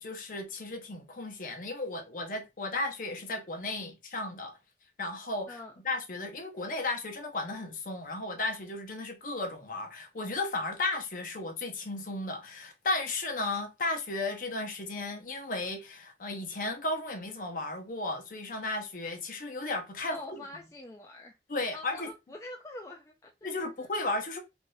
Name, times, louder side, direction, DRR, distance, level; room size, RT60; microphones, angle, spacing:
voice 1, 0.0-4.6 5.0-5.6 5.8-20.4 21.5-22.1 23.4-24.4, left 2 dB, 50° left, 0.7 m, -34 dB
voice 2, 20.1-21.4 21.7-23.3 23.8-23.9, left 2 dB, 15° left, 0.3 m, -44 dB
3.5 x 2.6 x 2.6 m
head